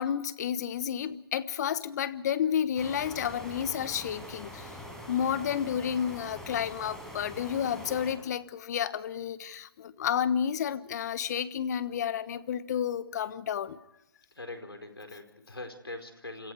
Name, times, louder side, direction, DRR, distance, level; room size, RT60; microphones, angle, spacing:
voice 1, 0.0-4.8 5.1-13.8, left 8 dB, 45° left, 15 dB, 1.3 m, -31 dB
sound 1, 2.8-8.1, equal, 5° left, 6.5 m, -44 dB
voice 2, 14.3-16.5, left 2 dB, 90° left, 6 dB, 4.6 m, -42 dB
28.0 x 27.0 x 4.9 m, 0.88 s
figure-of-eight pair, 135°, 12 cm